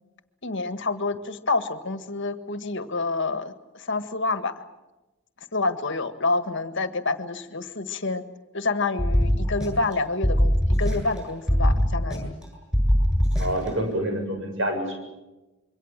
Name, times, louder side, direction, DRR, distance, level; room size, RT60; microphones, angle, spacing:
voice 1, 0.4-4.6 5.5-8.2 8.5-12.3, left 3 dB, 55° left, 10 dB, 1.7 m, -28 dB
sound 1, 9.0-9.9 10.2-11.2 11.5-12.4 12.7-13.7, equal, 5° right, 7.7 m, -21 dB
voice 2, 13.4-15.0, right 1 dB, 60° right, 4 dB, 7.4 m, -27 dB
26.5 x 24.0 x 7.5 m, 1.1 s
head